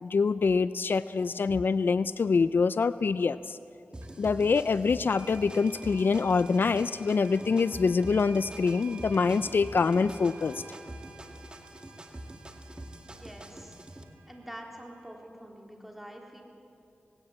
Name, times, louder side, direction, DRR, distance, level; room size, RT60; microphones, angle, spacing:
voice 1, 0.0-3.6 4.2-10.6, left 5 dB, 65° left, 15 dB, 0.4 m, -25 dB
sound 1, 3.9-14.0, right 1 dB, 25° right, 1.9 m, -45 dB
sound 2, 4.0-4.1 5.1-15.1, right 1 dB, 85° right, 4.9 m, -48 dB
voice 2, 13.0-13.8 14.3-16.4, equal, 5° right, 0 dB, 3.8 m, -46 dB
18.0 x 18.0 x 8.5 m, 2.7 s
cardioid pair, 55°, 4 cm